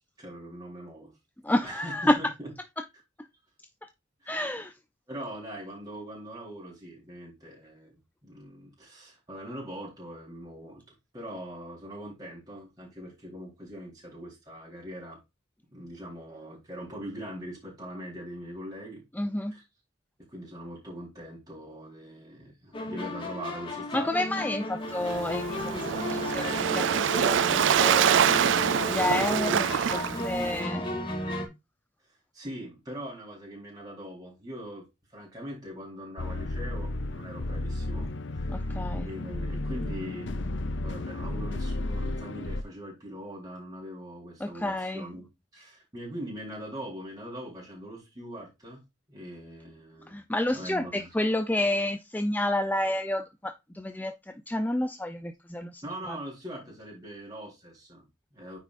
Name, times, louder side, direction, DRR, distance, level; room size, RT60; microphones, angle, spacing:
voice 1, 0.2-1.1 1.6-2.5 5.1-10.8 11.1-15.2 15.7-19.0 19.5-19.6 20.3-24.2 32.3-34.8 35.1-38.7 39.0-40.5 40.8-45.3 45.5-48.8 49.1-50.2 50.5-51.1 55.8-58.6, equal, 20° right, 4.2 m, -41 dB
voice 2, 1.4-2.3 2.8-2.9 4.3-4.7 19.2-19.5 23.9-28.2 28.9-30.8 38.5-39.1 44.4-45.1 50.1-54.1 54.5-56.2, left 1 dB, 10° left, 0.6 m, -30 dB
sound 1, 22.7-31.5, left 1 dB, 30° left, 2.6 m, -34 dB
Waves surf, 24.9-30.6, right 9 dB, 70° right, 0.4 m, -25 dB
sound 2, 36.2-42.6, left 2 dB, 70° left, 0.7 m, -33 dB
9.6 x 6.1 x 2.6 m
head